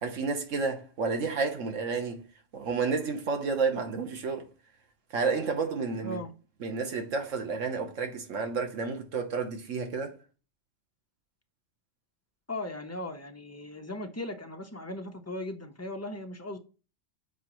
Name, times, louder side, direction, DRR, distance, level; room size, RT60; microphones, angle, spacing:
voice 1, 0.0-2.2 2.5-4.5 5.1-6.2 6.6-10.2, right 4 dB, 80° right, 1.3 m, -31 dB
voice 2, 12.5-16.6, left 1 dB, 20° left, 0.4 m, -38 dB
7.1 x 4.8 x 3.0 m
omnidirectional pair, 1.3 m